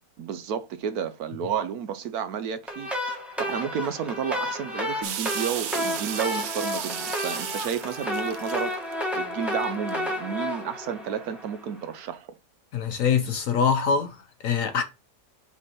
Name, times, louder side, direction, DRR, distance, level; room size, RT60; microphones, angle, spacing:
voice 1, 0.2-12.3, right 8 dB, 70° right, 1.1 m, -32 dB
sound 1, 2.7-11.8, left 1 dB, ahead, 1.4 m, -31 dB
sound 2, 5.0-9.2 9.6-9.9, right 10 dB, 85° right, 0.5 m, -34 dB
voice 2, 12.7-14.1 14.4-14.8, left 6 dB, 65° left, 0.9 m, -23 dB
5.3 x 3.5 x 5.5 m
omnidirectional pair, 1.8 m